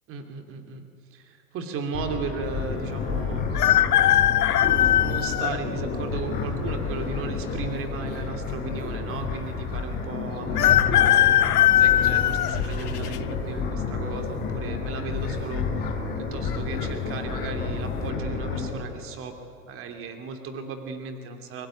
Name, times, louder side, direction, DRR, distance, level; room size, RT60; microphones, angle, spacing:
voice 1, 0.1-0.8 1.1-3.5 4.2-19.3 19.6-21.7, right 5 dB, 30° right, 5 dB, 3.0 m, -36 dB
sound 1, 1.9-18.7, left 4 dB, 20° left, 6.9 m, -30 dB
sound 2, 3.5-5.6 6.2-6.3 7.4-8.1 8.4-8.5 8.6-8.7 10.6-13.2 13.7-14.1 15.2-15.6 15.8-15.9 16.5-16.9 17.3-17.5, left 12 dB, 75° left, 1.0 m, -20 dB
23.5 x 22.5 x 9.2 m, 2.5 s
hypercardioid pair, 130°, 47 cm